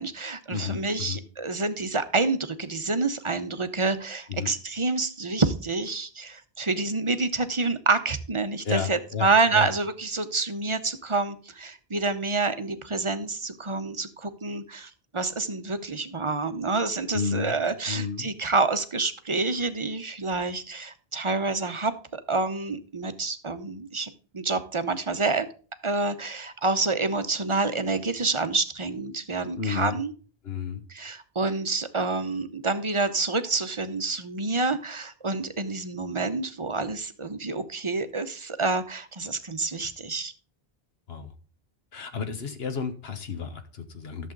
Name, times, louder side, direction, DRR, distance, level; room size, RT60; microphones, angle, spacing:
voice 1, 0.0-25.5 25.8-30.1 30.9-40.3, right 3 dB, 35° right, 11 dB, 0.7 m, -28 dB
voice 2, 0.5-1.2 4.3-4.5 8.6-9.7 17.1-17.6 17.9-18.3 29.6-30.0 30.4-30.8 41.1-41.3 41.9-44.3, left 6 dB, 75° left, 9 dB, 1.4 m, -32 dB
11.5 x 7.2 x 3.8 m, 0.39 s
omnidirectional pair, 1.1 m